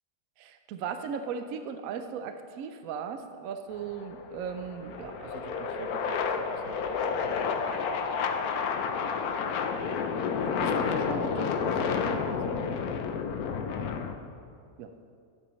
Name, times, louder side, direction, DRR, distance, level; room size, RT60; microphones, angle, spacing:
voice 1, 0.4-6.8 10.5-12.7 13.8-14.0 14.8-14.9, right 6 dB, 75° right, 7 dB, 1.0 m, -38 dB
sound 1, 3.7-14.1, left 6 dB, 85° left, 1.1 m, -30 dB
12.0 x 8.8 x 3.1 m, 2.3 s
omnidirectional pair, 1.5 m